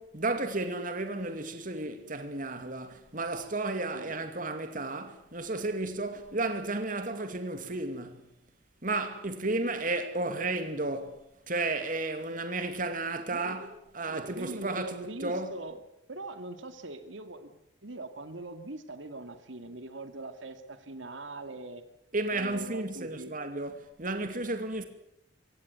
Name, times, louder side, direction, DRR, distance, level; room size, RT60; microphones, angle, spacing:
voice 1, 0.0-8.3 8.8-11.2 11.5-15.6 22.1-24.8, right 2 dB, 45° right, 2.5 m, -33 dB
voice 2, 13.3-13.7 14.1-15.8 16.1-17.5 17.8-21.8 22.3-23.3, right 2 dB, 80° right, 2.3 m, -42 dB
24.5 x 17.5 x 9.5 m
head